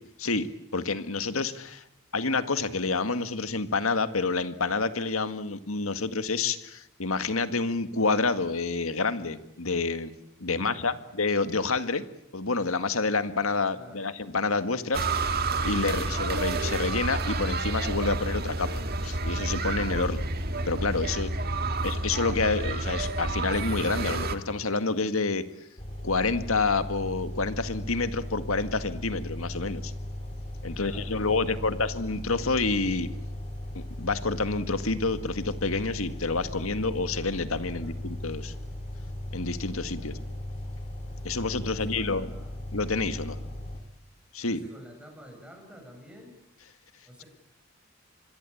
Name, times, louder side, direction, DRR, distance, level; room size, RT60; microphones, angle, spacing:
voice 1, 0.7-1.8 2.1-10.1 10.4-12.0 12.3-15.3 15.6-18.7 19.0-20.2 20.7-21.3 21.8-25.4 26.0-29.9 30.6-33.1 33.7-38.5 39.3-40.1 41.2-42.3 42.7-43.4 44.3-44.6, left 3 dB, 80° left, 10 dB, 1.9 m, -28 dB
voice 2, 10.6-11.0 13.7-14.0 30.7-31.9 37.7-38.0 40.0-40.2 41.7-42.6 43.3-43.5 44.5-46.4 47.0-47.3, equal, 5° right, 3 dB, 7.7 m, -50 dB
sound 1, 14.9-24.4, right 2 dB, 45° right, 1.8 m, -29 dB
sound 2, 25.8-43.8, left 1 dB, 30° left, 4.0 m, -37 dB
26.5 x 22.0 x 8.7 m, 0.81 s
head